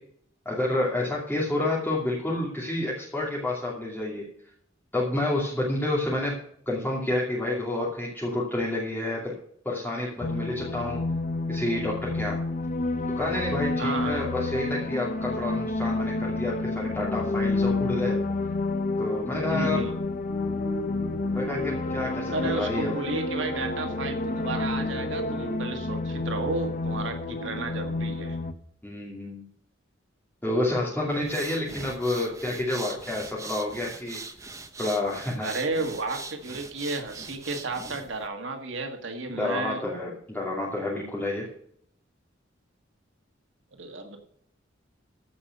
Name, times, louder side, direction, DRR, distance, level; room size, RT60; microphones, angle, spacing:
voice 1, 0.4-4.3 4.9-6.4 6.7-9.3 9.6-11.0 11.5-12.4 13.2-18.2 19.0-19.8 21.3-22.9 28.8-29.4 30.4-34.2 34.8-35.5 39.3-41.5, left 1 dB, 10° left, -5 dB, 2.8 m, -29 dB
sound 1, 10.2-28.5, left 2 dB, 40° left, 0.9 m, -29 dB
voice 2, 13.8-14.3 19.5-20.0 22.3-28.4 35.4-39.8 43.7-44.2, right 3 dB, 75° right, 4 dB, 1.8 m, -33 dB
sound 2, 20.2-25.6, equal, 80° left, 2.8 m, -37 dB
sound 3, 31.1-38.3, right 3 dB, 15° right, 1.0 m, -41 dB
15.0 x 5.5 x 8.0 m, 0.67 s
head